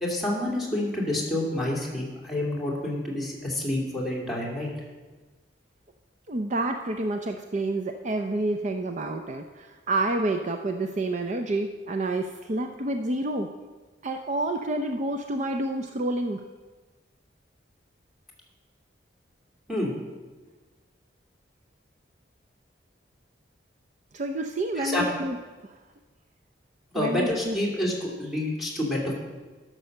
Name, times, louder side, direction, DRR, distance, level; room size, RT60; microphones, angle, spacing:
voice 1, 0.0-4.7 19.7-19.9 24.8-25.0 26.9-29.1, left 1 dB, ahead, -3 dB, 2.6 m, -28 dB
voice 2, 6.3-13.5 14.0-16.4 24.1-25.4 25.6-25.7 26.9-27.6, right 2 dB, 40° right, 5 dB, 0.5 m, -29 dB
12.0 x 6.2 x 6.5 m, 1.3 s
head